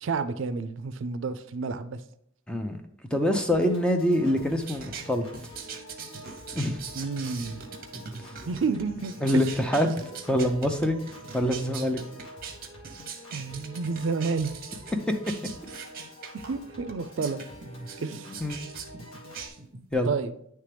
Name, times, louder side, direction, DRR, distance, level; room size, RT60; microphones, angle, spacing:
voice 1, 0.0-2.0 6.9-7.6 8.5-9.5 13.3-14.5 16.3-17.4 18.0-18.3 20.1-20.3, right 4 dB, 65° right, 0.4 m, -30 dB
voice 2, 2.5-2.8 3.1-5.3 6.5-6.9 9.2-11.0 11.3-12.0 18.4-18.7 19.9-20.2, equal, 5° left, 0.5 m, -25 dB
Piano / Organ, 3.5-19.5, equal, 90° left, 1.5 m, -47 dB
sound 1, 4.6-19.9, right 6 dB, 45° right, 0.8 m, -42 dB
9.6 x 3.3 x 3.4 m
head